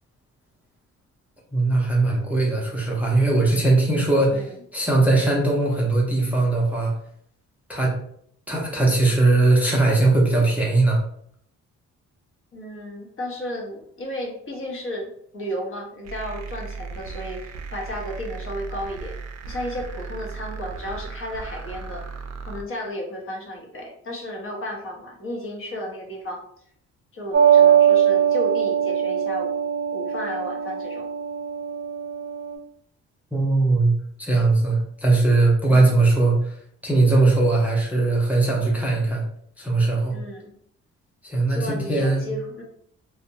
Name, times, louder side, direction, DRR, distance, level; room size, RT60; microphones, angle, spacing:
voice 1, 1.5-6.9 7.7-8.0 8.5-11.0 33.3-33.9 34.2-36.5 36.8-39.2 39.6-40.2 41.2-42.3, right 2 dB, 5° right, -3 dB, 0.5 m, -20 dB
voice 2, 12.5-19.2 19.5-22.0 22.5-26.4 27.1-29.5 29.9-31.1 35.7-35.9 40.1-40.5 41.5-42.6, equal, 45° left, 0 dB, 0.8 m, -33 dB
sound 1, 16.0-22.6, right 5 dB, 60° right, 0.4 m, -36 dB
sound 2, 27.3-32.5, right 9 dB, 40° right, 0.8 m, -20 dB
2.5 x 2.1 x 2.7 m, 0.66 s
cardioid pair, 90°, 30 cm